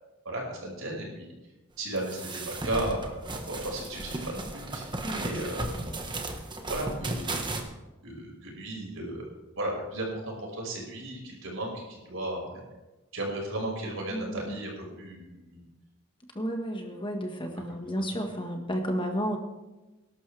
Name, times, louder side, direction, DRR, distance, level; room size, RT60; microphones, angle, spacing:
voice 1, 0.2-1.3 1.8-5.8 6.7-7.3 8.0-9.3 9.6-12.6 13.1-15.6 17.7-18.2, right 1 dB, 70° right, -1 dB, 5.6 m, -35 dB
sound 1, 2.0-7.6, right 2 dB, 20° right, 1.4 m, -35 dB
voice 2, 14.1-14.5 16.3-19.4, equal, 25° left, 4 dB, 1.5 m, -32 dB
20.5 x 12.0 x 3.4 m, 1.1 s
head